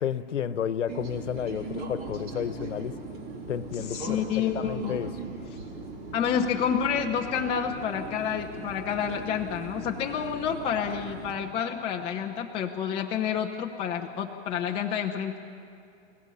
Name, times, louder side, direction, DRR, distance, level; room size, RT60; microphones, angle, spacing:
voice 1, 0.0-3.0 3.5-5.1, left 8 dB, 90° left, 14 dB, 1.1 m, -31 dB
sound 1, 0.9-11.3, right 3 dB, 25° right, 3.1 m, -39 dB
voice 2, 3.7-5.0 6.1-15.4, left 8 dB, 15° left, 2 dB, 0.8 m, -29 dB
29.0 x 16.5 x 5.6 m, 2.6 s
hypercardioid pair, 155°, 35 cm